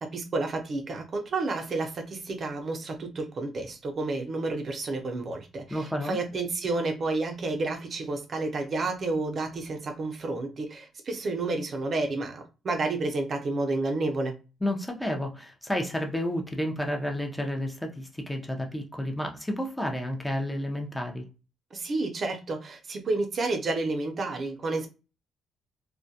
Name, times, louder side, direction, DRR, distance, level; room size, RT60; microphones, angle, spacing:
voice 1, 0.0-14.4 21.7-24.9, right 3 dB, 45° right, 0.4 m, -30 dB
voice 2, 5.7-6.2 14.6-21.3, left 1 dB, 10° left, 0.5 m, -31 dB
2.3 x 2.1 x 2.6 m
cardioid pair, 90°, 0 cm